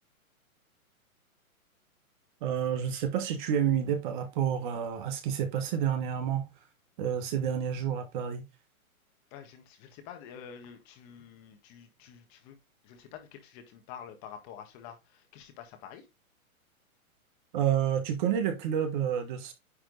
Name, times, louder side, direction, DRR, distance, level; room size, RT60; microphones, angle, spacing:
voice 1, 2.4-6.5 7.0-8.4 17.5-19.5, right 9 dB, 35° right, 1.3 m, -29 dB
voice 2, 9.3-12.6 12.8-16.0, left 8 dB, 30° left, 1.5 m, -48 dB
9.9 x 3.4 x 3.9 m
hypercardioid pair, 150°, 43 cm